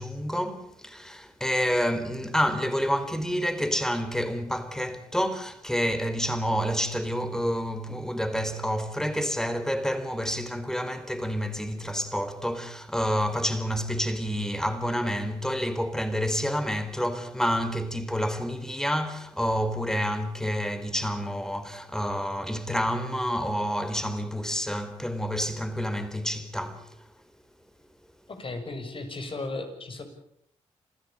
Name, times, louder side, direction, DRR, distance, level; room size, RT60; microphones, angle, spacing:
voice 1, 0.0-27.0, equal, 5° left, 4.4 m, -28 dB
voice 2, 28.3-30.0, left 2 dB, 45° left, 7.0 m, -35 dB
26.5 x 15.5 x 9.0 m
supercardioid pair, 50°, 12 cm